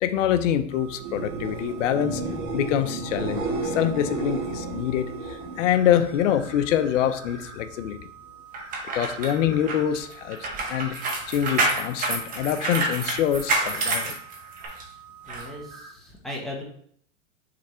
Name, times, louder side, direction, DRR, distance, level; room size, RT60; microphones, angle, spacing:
voice 1, 0.0-2.2 2.5-8.0 8.9-10.9 11.3-14.1, left 10 dB, 70° left, 10 dB, 0.8 m, -25 dB
sound 1, 0.7-15.9, right 6 dB, 65° right, 2.1 m, -47 dB
sound 2, 0.9-6.7 7.0-7.6 14.6-14.7, right 3 dB, 35° right, 1.8 m, -33 dB
sound 3, 8.5-14.8 15.3-15.4, right 3 dB, 20° right, 1.1 m, -28 dB
voice 2, 15.3-16.6, left 1 dB, ahead, -3 dB, 0.9 m, -37 dB
6.5 x 3.4 x 4.3 m, 0.62 s
supercardioid pair, 155°, 39 cm